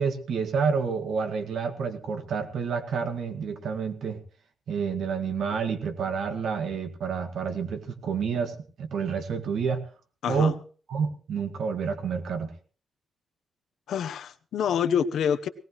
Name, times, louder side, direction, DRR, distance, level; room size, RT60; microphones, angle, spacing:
voice 1, 0.0-4.2 4.7-9.8 10.3-10.6 10.9-12.5, right 6 dB, 65° right, 7 dB, 1.7 m, -29 dB
voice 2, 10.2-10.5 13.9-15.5, left 8 dB, 80° left, 10 dB, 0.9 m, -26 dB
18.5 x 17.5 x 3.1 m, 0.39 s
wide cardioid pair, 180°, 0 cm